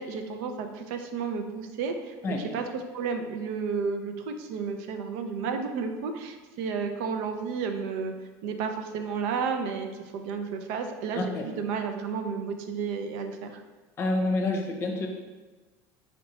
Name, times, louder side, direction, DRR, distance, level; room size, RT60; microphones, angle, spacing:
voice 1, 0.0-8.1 8.4-13.6, right 5 dB, 80° right, 5 dB, 0.5 m, -32 dB
voice 2, 11.1-11.5 14.0-15.1, left 2 dB, 30° left, 2 dB, 0.7 m, -28 dB
4.3 x 4.2 x 2.9 m, 1.2 s
cardioid pair, 145°, 8 cm